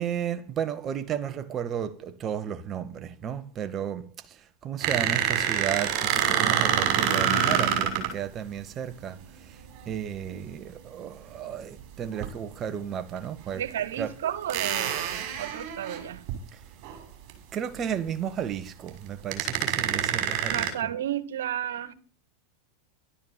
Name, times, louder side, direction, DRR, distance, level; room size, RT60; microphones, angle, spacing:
voice 1, 0.0-4.1 4.6-9.2 9.9-13.6 14.0-14.1 17.5-20.6, right 9 dB, 35° right, 1.8 m, -33 dB
sound 1, 4.8-8.1 10.2-10.5 12.1-12.3 13.2-13.3 14.5-16.3 16.8-17.0 17.3-17.4 18.9-19.0 19.3-20.7, right 9 dB, 50° right, 6.2 m, -26 dB
voice 2, 13.5-16.2 20.5-21.9, right 11 dB, 75° right, 2.2 m, -32 dB
13.0 x 12.5 x 8.7 m
hypercardioid pair, 100°, 0 cm